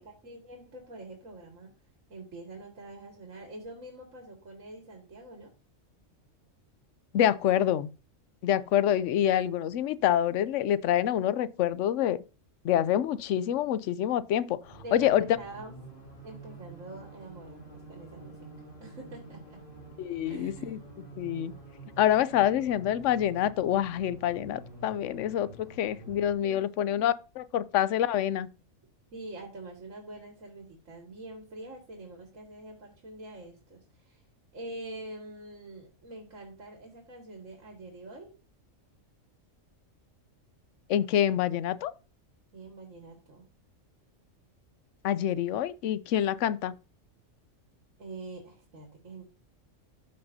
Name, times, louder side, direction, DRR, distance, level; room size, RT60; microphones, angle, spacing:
voice 1, 0.0-1.7 2.1-5.5 13.8-14.0 14.8-15.7 16.2-18.4 18.8-19.6 20.3-20.9 26.4-26.7 29.1-34.2 34.5-38.4 42.5-43.5 48.0-49.2, right 2 dB, 80° right, 2.3 m, -45 dB
voice 2, 7.1-7.9 8.4-12.2 12.6-14.6 14.9-15.3 20.0-20.8 21.2-21.5 22.0-28.5 40.9-41.9 45.0-46.7, left 11 dB, 70° left, 0.9 m, -26 dB
sound 1, 14.6-26.3, right 2 dB, 40° left, 3.7 m, -48 dB
13.5 x 5.5 x 2.7 m
omnidirectional pair, 1.3 m